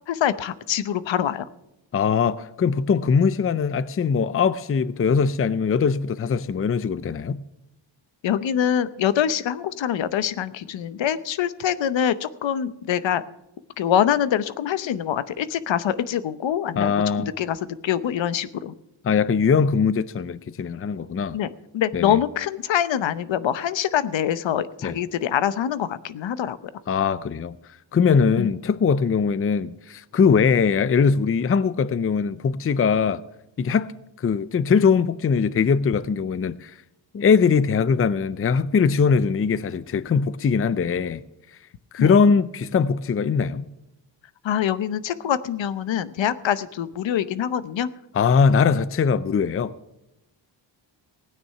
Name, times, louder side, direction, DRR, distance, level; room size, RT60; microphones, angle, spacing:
voice 1, 0.1-1.4 8.2-13.2 13.8-17.6 17.8-18.7 21.3-21.5 21.7-26.6 28.4-28.5 42.0-42.2 44.4-47.9, left 9 dB, 80° left, 0.9 m, -24 dB
voice 2, 1.9-7.4 16.8-17.3 19.0-21.4 21.9-22.2 24.8-25.0 26.9-27.6 27.9-33.2 33.6-33.9 34.2-36.7 37.1-41.2 41.9-43.6 48.1-49.7, left 6 dB, 30° left, 0.5 m, -21 dB
16.0 x 9.5 x 5.7 m
cardioid pair, 100°, 44 cm